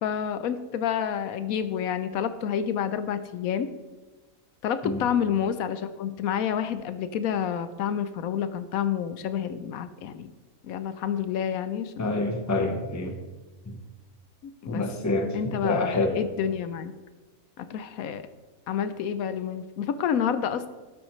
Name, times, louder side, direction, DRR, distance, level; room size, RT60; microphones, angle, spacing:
voice 1, 0.0-3.7 4.6-10.3 10.6-12.1 14.6-14.8 15.3-16.9 17.6-18.3 18.7-20.7, left 8 dB, 80° left, 11 dB, 1.1 m, -29 dB
voice 2, 12.0-13.2 13.7-13.8 14.7-16.1, left 2 dB, 15° left, 5 dB, 0.8 m, -27 dB
12.5 x 7.9 x 3.1 m, 1.2 s
omnidirectional pair, 1.5 m